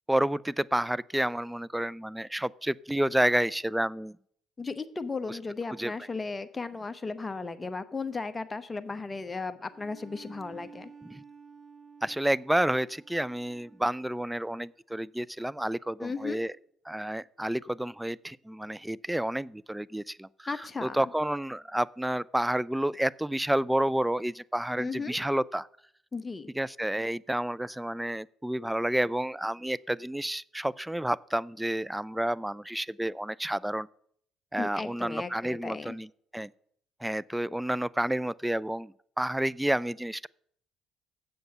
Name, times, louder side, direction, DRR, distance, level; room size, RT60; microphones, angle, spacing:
voice 1, 0.1-4.2 5.3-5.4 5.8-5.9 11.1-11.2 12.0-16.5 16.9-25.7 26.6-33.9 34.5-36.5 37.0-40.3, right 1 dB, 5° right, 0.3 m, -30 dB
voice 2, 4.6-10.9 16.0-16.4 20.5-21.0 24.8-25.2 26.1-26.5 34.6-35.9, left 4 dB, 25° left, 0.9 m, -35 dB
Bowed string instrument, 9.7-14.4, right 5 dB, 20° right, 2.3 m, -52 dB
7.7 x 7.1 x 6.8 m
hypercardioid pair, 55°, 0 cm